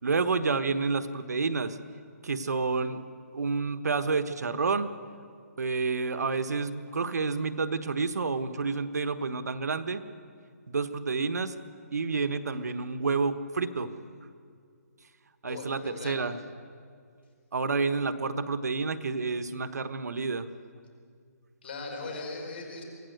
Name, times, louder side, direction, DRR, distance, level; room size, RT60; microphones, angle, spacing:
voice 1, 0.0-1.8 2.2-3.1 3.3-4.9 5.6-10.0 10.7-11.6 11.9-13.9 15.4-16.4 17.5-20.5, right 4 dB, 80° right, 10 dB, 1.2 m, -29 dB
voice 2, 15.4-16.2 21.6-22.8, left 3 dB, 40° left, 2 dB, 4.7 m, -39 dB
24.0 x 16.0 x 7.9 m, 2.2 s
hypercardioid pair, 175°, 9 cm